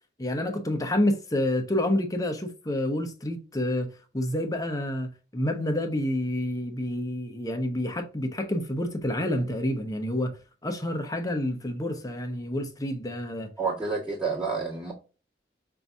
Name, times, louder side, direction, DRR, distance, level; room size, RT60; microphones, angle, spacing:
voice 1, 0.2-10.4 10.6-13.5, left 1 dB, 20° left, 0.9 m, -28 dB
voice 2, 13.6-14.9, right 4 dB, 5° right, 1.5 m, -29 dB
5.7 x 2.7 x 3.5 m
head